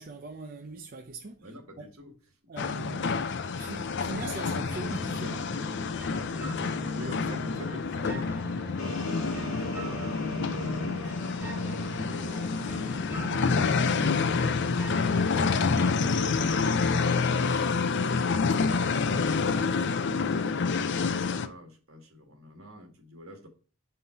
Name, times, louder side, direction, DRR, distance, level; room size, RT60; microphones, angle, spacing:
voice 1, 0.0-1.5 1.8-1.9 2.5-3.1 3.6-5.5 15.0-15.6, right 3 dB, 40° right, 0.6 m, -41 dB
voice 2, 1.4-2.1 6.6-14.6 15.0-15.2 15.6-18.2 18.8-23.5, equal, 70° right, 1.9 m, -47 dB
sound 1, 2.6-21.5, left 4 dB, 55° left, 0.5 m, -28 dB
sound 2, 4.7-17.7, left 1 dB, 10° right, 1.0 m, -40 dB
sound 3, 8.8-14.2, equal, 70° left, 2.2 m, -41 dB
5.7 x 5.5 x 4.4 m
head